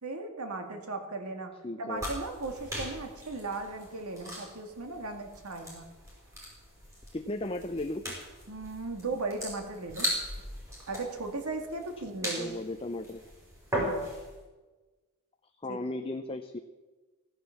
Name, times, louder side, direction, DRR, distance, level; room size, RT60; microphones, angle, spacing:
voice 1, 0.0-1.5 1.8-5.9 8.5-10.1 10.9-12.5 13.8-14.1 15.7-15.8, right 3 dB, 90° right, 5 dB, 2.2 m, -37 dB
voice 2, 1.6-2.1 7.1-8.1 12.2-13.2 15.6-16.6, left 2 dB, 25° left, 6 dB, 0.6 m, -36 dB
sound 1, 2.0-14.4, equal, 15° right, 5.2 m, -39 dB
16.0 x 9.9 x 7.2 m, 1.2 s
head